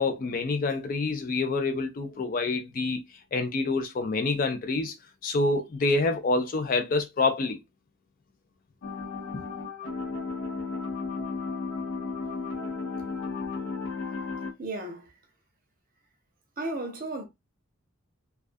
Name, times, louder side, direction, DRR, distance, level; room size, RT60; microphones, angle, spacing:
voice 1, 0.0-3.0 3.3-5.0 5.2-7.6 9.3-9.4, left 3 dB, 40° left, 0.3 m, -27 dB
sound 1, 8.8-14.5, left 4 dB, 70° left, 0.7 m, -34 dB
voice 2, 14.6-15.1 16.6-17.2, right 2 dB, 40° right, 0.6 m, -34 dB
2.3 x 2.2 x 2.4 m
head